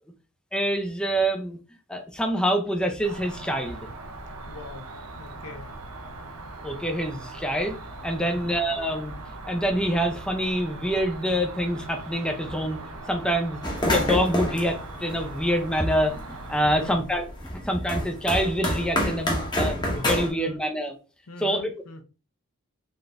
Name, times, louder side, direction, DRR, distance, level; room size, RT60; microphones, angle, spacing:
voice 1, 0.5-1.6 1.9-3.9 6.6-7.8 8.0-9.1 9.5-12.8 13.1-20.9 21.4-21.7, equal, 5° left, 0.5 m, -26 dB
Cricket, 3.0-16.9, right 2 dB, 90° right, 0.7 m, -40 dB
voice 2, 4.4-4.9 5.2-5.7 8.2-8.6 16.6-17.0 20.2-20.6 21.3-22.0, left 2 dB, 85° left, 0.7 m, -42 dB
sound 1, 13.6-16.3 16.6-20.3, left 1 dB, 20° left, 0.9 m, -28 dB
4.0 x 2.5 x 3.3 m
head